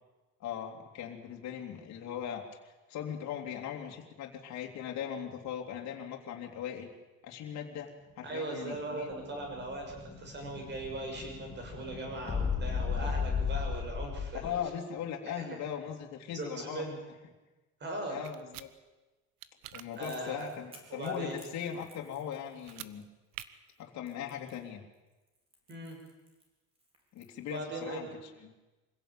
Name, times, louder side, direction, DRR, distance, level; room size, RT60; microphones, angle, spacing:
voice 1, 0.4-2.4 2.9-6.9 7.2-9.1 14.3-16.9 18.1-18.7 19.7-23.0 23.8-24.8 27.1-28.5, left 9 dB, 55° left, 1 dB, 3.2 m, -39 dB
voice 2, 8.2-14.6 15.3-15.5 16.3-17.0 17.8-18.2 20.0-20.5 20.9-21.4 25.7-26.0 27.5-28.1, right 2 dB, 30° right, 2 dB, 6.9 m, -39 dB
Explosion, 8.9-14.6, left 6 dB, 20° left, 5.2 m, -36 dB
sound 1, 18.2-18.7 19.4-19.9 22.6-22.9 23.3-23.5, right 14 dB, 80° right, 1.3 m, -45 dB
Crackle, 19.7-28.0, right 1 dB, 15° right, 4.5 m, -60 dB
25.5 x 16.5 x 9.0 m, 1.1 s
cardioid pair, 165°, 33 cm